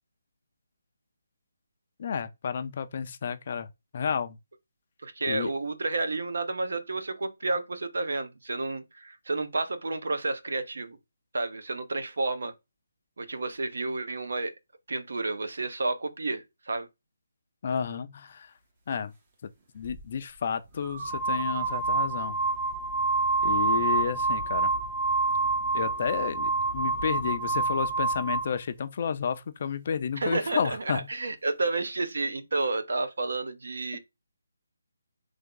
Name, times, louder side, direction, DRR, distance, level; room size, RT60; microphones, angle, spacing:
voice 1, 2.0-3.7 3.9-4.4 5.3-5.5 17.6-18.5 18.9-19.1 19.7-22.4 23.4-24.7 25.7-31.1, left 7 dB, 30° left, 0.4 m, -31 dB
voice 2, 5.0-11.0 11.3-12.5 13.2-14.5 14.9-16.9 30.2-34.0, right 3 dB, 65° right, 0.8 m, -31 dB
sound 1, 19.8-20.0 20.8-28.5, right 3 dB, 20° right, 0.6 m, -27 dB
3.5 x 3.4 x 3.7 m
hypercardioid pair, 175°, 0 cm